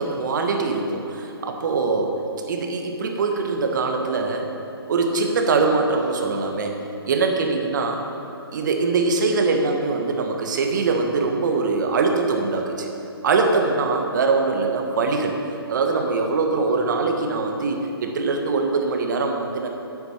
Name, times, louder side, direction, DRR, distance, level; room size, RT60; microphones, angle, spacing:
voice 1, 0.0-2.1 2.5-4.5 4.9-6.8 7.1-8.0 8.5-12.9 13.2-15.3 15.7-19.7, right 4 dB, 50° right, 3 dB, 1.5 m, -22 dB
9.7 x 8.0 x 6.6 m, 2.9 s
figure-of-eight pair, 140°, 13 cm